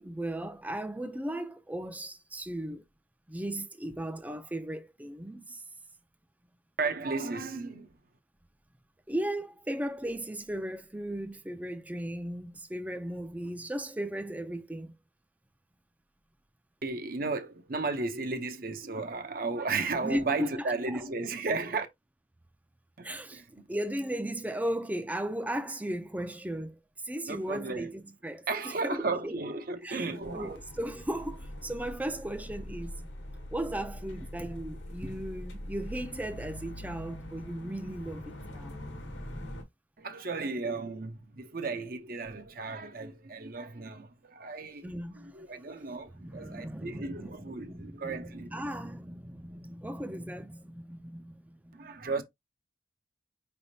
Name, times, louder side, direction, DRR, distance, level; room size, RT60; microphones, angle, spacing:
voice 1, 0.0-2.8 3.3-5.6 9.1-15.0 20.0-20.5 20.9-21.0 23.0-26.8 27.0-29.3 29.8-30.1 30.3-33.1 33.5-38.7 44.8-45.4 46.1-51.9, right 1 dB, 10° right, 0.4 m, -36 dB
voice 2, 6.8-7.9 16.8-21.9 23.0-23.7 27.3-27.9 28.5-30.6 40.0-44.9 45.3-48.5 51.7-52.2, right 3 dB, 50° right, 0.7 m, -34 dB
sound 1, 30.2-39.6, left 1 dB, 75° left, 1.1 m, -43 dB
5.0 x 3.4 x 2.7 m
head